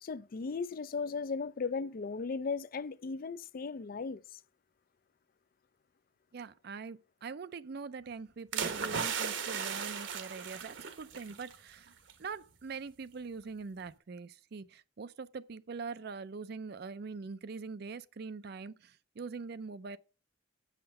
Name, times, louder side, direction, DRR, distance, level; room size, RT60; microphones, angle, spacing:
voice 1, 0.0-4.2, left 4 dB, 50° left, 0.4 m, -36 dB
voice 2, 6.3-11.9 12.2-20.0, right 4 dB, 55° right, 0.5 m, -43 dB
sound 1, 8.5-11.6 11.9-12.1, right 6 dB, 75° right, 1.1 m, -36 dB
8.7 x 5.8 x 5.3 m
head